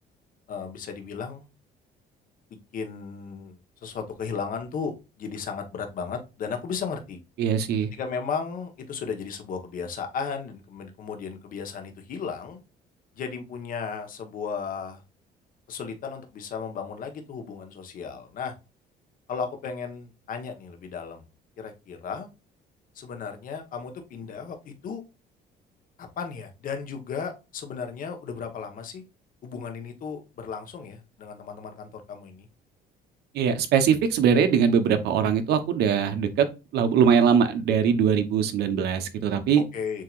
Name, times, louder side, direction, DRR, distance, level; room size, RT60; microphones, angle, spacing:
voice 1, 0.5-1.5 2.7-7.2 7.9-12.6 13.2-15.0 15.7-18.5 19.3-21.2 21.6-22.3 22.9-25.0 26.0-29.0 29.4-32.5 39.7-40.0, left 6 dB, 55° left, 1.2 m, -35 dB
voice 2, 7.4-7.9 33.3-36.5 36.7-39.6, right 7 dB, 75° right, 0.9 m, -21 dB
7.5 x 2.8 x 2.4 m
cardioid pair, 110°, 17 cm